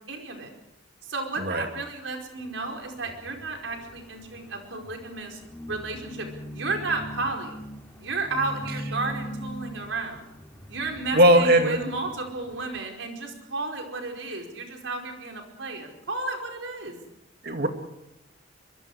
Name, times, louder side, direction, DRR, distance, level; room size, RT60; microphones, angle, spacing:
voice 1, 0.1-0.5 1.1-5.4 5.7-6.3 6.5-7.6 8.0-10.2 10.7-16.9, right 3 dB, 75° right, 3 dB, 5.0 m, -32 dB
sound 1, 2.4-12.8, equal, 10° left, 3.7 m, -41 dB
voice 2, 11.1-11.8 17.4-17.7, right 1 dB, 55° right, 5 dB, 2.5 m, -18 dB
24.0 x 24.0 x 4.9 m, 0.89 s
head